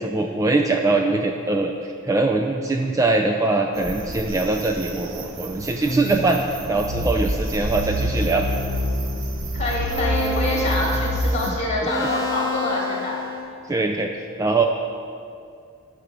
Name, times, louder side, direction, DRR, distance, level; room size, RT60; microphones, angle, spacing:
voice 1, 0.0-6.4 6.7-8.5 11.5-11.6 11.8-11.9 13.7-14.1 14.4-14.7, right 3 dB, 15° right, 2 dB, 0.4 m, -22 dB
sound 1, 3.8-11.5, left 1 dB, 75° right, 0.8 m, -27 dB
sound 2, 5.9-7.2 7.9-13.4, equal, 15° left, 1.5 m, -32 dB
voice 2, 9.5-13.2, left 1 dB, 35° left, -3 dB, 2.3 m, -25 dB
10.0 x 5.0 x 6.9 m, 2.4 s
head